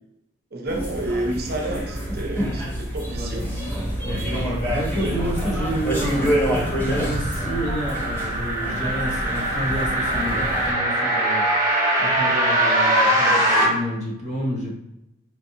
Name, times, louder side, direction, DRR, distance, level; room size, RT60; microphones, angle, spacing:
voice 1, 0.5-3.5 5.0-5.2, right 1 dB, 50° right, 1 dB, 0.6 m, -30 dB
sound 1, 0.7-10.7, equal, 10° left, 0.8 m, -27 dB
voice 2, 3.1-3.5 4.0-6.4 6.8-14.8, equal, 35° left, -4 dB, 1.0 m, -30 dB
sound 2, 5.3-13.6, right 1 dB, 15° right, 1.1 m, -23 dB
4.6 x 2.4 x 2.7 m, 0.89 s
head